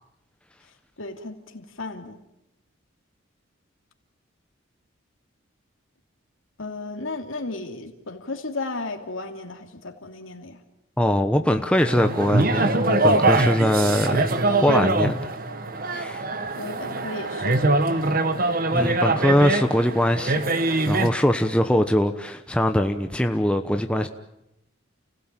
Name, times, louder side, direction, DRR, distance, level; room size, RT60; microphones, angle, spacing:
voice 1, 1.0-2.2 6.6-10.6 16.3-18.4, left 2 dB, 75° left, 2.8 m, -35 dB
voice 2, 11.0-14.4 14.6-15.3 15.9-16.2 18.7-20.4 20.9-24.1, equal, 5° left, 1.0 m, -22 dB
sound 1, 11.8-21.1, right 2 dB, 45° right, 1.3 m, -23 dB
30.0 x 16.5 x 9.1 m
head